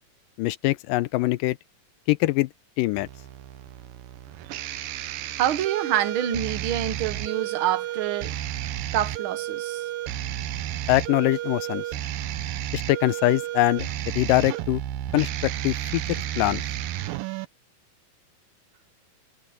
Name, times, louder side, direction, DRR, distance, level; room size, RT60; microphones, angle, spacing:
voice 1, 0.4-1.6 2.1-2.5 2.8-3.1 10.9-11.8 12.7-13.9 14.1-14.8 15.1-16.6, left 18 dB, 80° left, 2.2 m, -23 dB
sound 1, 3.0-17.5, right 13 dB, 85° right, 2.7 m, -32 dB
voice 2, 5.0-8.3 8.9-9.9, right 11 dB, 65° right, 1.3 m, -27 dB
omnidirectional pair, 3.9 m